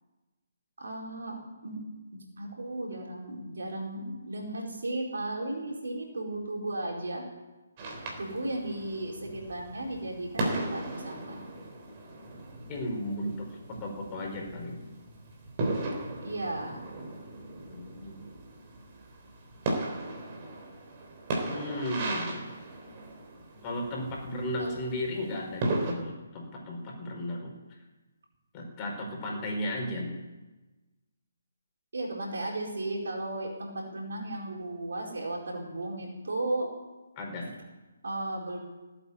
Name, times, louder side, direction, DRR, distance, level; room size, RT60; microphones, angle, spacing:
voice 1, 0.8-1.8 2.1-7.2 8.2-11.5 16.2-16.9 24.6-24.8 31.9-36.7 38.0-38.6, right 2 dB, 70° right, -1 dB, 4.6 m, -35 dB
sound 1, 7.8-25.9, right 2 dB, 30° right, 3.7 m, -37 dB
voice 2, 12.7-14.8 17.7-18.2 21.5-22.5 23.6-27.5 28.5-30.2 37.2-37.5, left 1 dB, 25° left, 0 dB, 4.8 m, -35 dB
18.0 x 8.7 x 8.6 m, 1.1 s
figure-of-eight pair, 145°, 0 cm